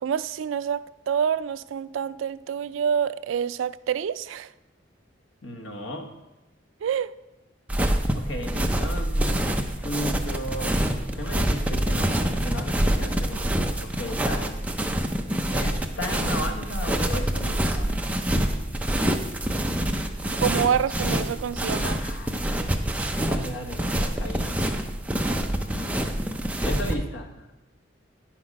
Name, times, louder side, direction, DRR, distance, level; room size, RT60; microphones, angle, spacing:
voice 1, 0.0-4.5 6.8-7.1 20.3-22.0, right 8 dB, 90° right, 0.3 m, -27 dB
voice 2, 5.4-6.1 8.1-10.8 11.1-14.6 15.5-18.0 21.8-24.5 25.3-26.0 26.6-27.5, equal, 90° left, 1.3 m, -35 dB
sound 1, 7.7-26.9, right 1 dB, 10° right, 0.5 m, -26 dB
9.9 x 5.9 x 5.2 m
head